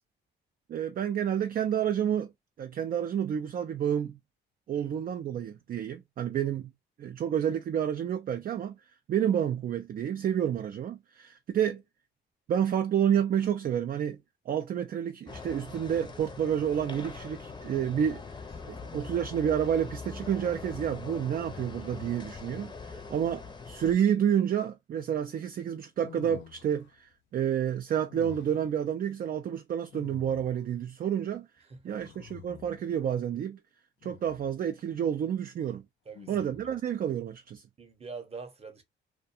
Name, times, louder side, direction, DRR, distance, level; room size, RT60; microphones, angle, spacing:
voice 1, 0.7-2.3 2.6-4.2 4.7-6.7 7.0-8.8 9.1-11.8 12.5-14.2 14.5-18.2 18.7-31.5 31.8-33.6 34.0-35.8 36.3-37.6, right 9 dB, 45° right, 0.4 m, -29 dB
sound 1, 15.3-23.9, left 4 dB, 20° left, 0.6 m, -42 dB
voice 2, 18.6-19.1 23.0-23.2 31.7-32.0 36.1-36.5 37.8-38.8, right 4 dB, 30° right, 0.8 m, -45 dB
sound 2, 26.0-27.0 28.1-28.8 29.9-30.7 31.9-32.9 34.0-34.6 36.1-36.9, left 12 dB, 70° left, 0.4 m, -49 dB
2.4 x 2.2 x 2.6 m
cardioid pair, 90°, 20 cm